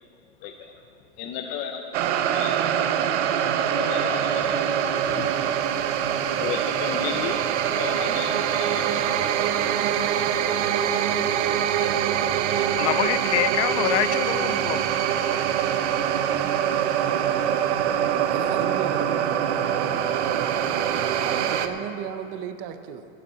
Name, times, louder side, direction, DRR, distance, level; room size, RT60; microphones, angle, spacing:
voice 1, 0.4-0.7 1.2-1.8 2.1-3.1 3.7-4.7 5.1-5.6 6.3-7.4 7.7-9.2, left 8 dB, 30° left, 4 dB, 0.5 m, -34 dB
sound 1, 1.9-21.7, right 9 dB, 85° right, 0.9 m, -24 dB
voice 2, 12.8-14.9, left 15 dB, 80° left, 16 dB, 0.5 m, -25 dB
voice 3, 18.3-20.2 21.2-23.1, right 9 dB, 30° right, 9 dB, 0.4 m, -34 dB
11.5 x 8.8 x 7.5 m, 2.8 s
supercardioid pair, 165°, 34 cm